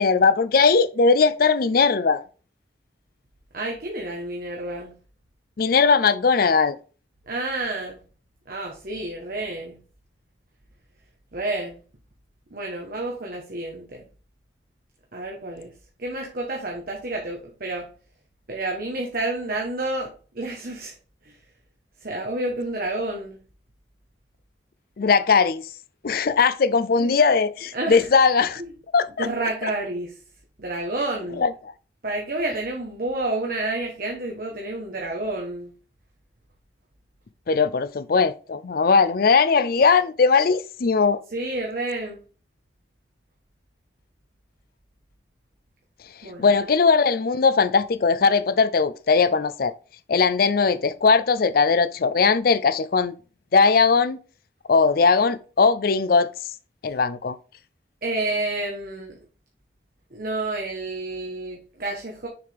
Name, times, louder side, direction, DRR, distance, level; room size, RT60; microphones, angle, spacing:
voice 1, 0.0-2.2 5.6-6.8 25.0-25.6 26.0-28.6 28.9-29.3 31.4-31.5 37.5-41.2 46.4-49.7 50.1-53.1 53.5-54.2 54.7-56.3 56.8-57.4, left 5 dB, 50° left, 0.4 m, -19 dB
voice 2, 3.5-4.9 7.3-8.0 8.5-9.8 11.3-11.8 12.5-14.0 15.1-15.7 16.0-17.9 18.5-20.9 21.2-21.3 22.0-23.4 27.0-27.1 27.7-28.1 28.6-28.7 29.2-30.1 30.6-31.4 32.0-35.7 41.3-42.2 46.2-46.5 58.0-59.2 60.1-62.3, right 2 dB, 50° right, 1.1 m, -29 dB
6.7 x 4.8 x 3.5 m
head